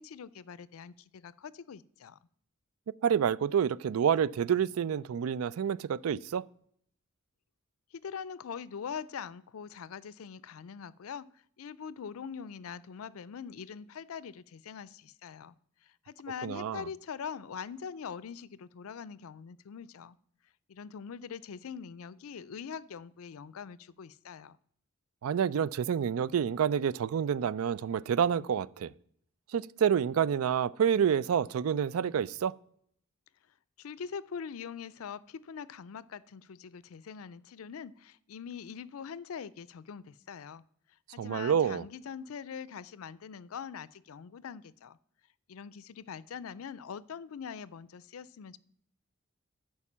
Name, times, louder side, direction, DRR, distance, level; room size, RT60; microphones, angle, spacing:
voice 1, 0.0-2.2 7.9-11.3 11.6-15.6 15.8-20.2 20.7-24.6 33.8-40.6 41.1-45.0 45.5-48.6, left 6 dB, 85° left, 0.4 m, -43 dB
voice 2, 3.0-6.4 16.4-16.8 25.2-28.9 29.5-32.5 41.2-41.8, right 8 dB, 85° right, 0.4 m, -28 dB
11.0 x 4.7 x 7.2 m
head